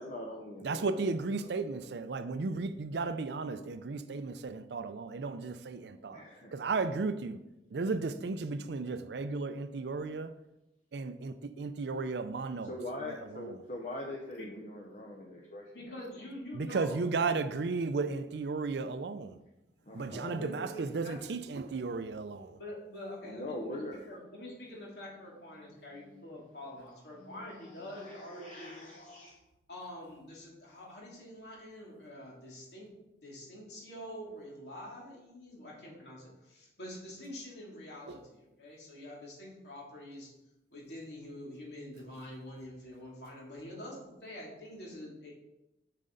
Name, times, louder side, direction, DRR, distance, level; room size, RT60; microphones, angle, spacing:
voice 1, 0.0-1.5 6.1-6.5 12.6-15.7 19.9-20.4 23.2-24.1 25.6-26.2 27.2-27.4 27.6-29.3, left 1 dB, 45° left, 0.8 m, -43 dB
voice 2, 0.6-6.2 6.5-7.4 7.7-10.3 10.9-12.7 13.0-13.6 16.5-19.4 19.9-22.6 38.1-38.2, right 4 dB, 75° right, 0.5 m, -34 dB
voice 3, 15.7-17.2 20.1-21.4 22.6-23.8 24.1-28.9 29.7-32.9 33.2-40.3 40.7-45.3, left 1 dB, 70° left, 2.6 m, -46 dB
7.3 x 6.7 x 3.9 m
head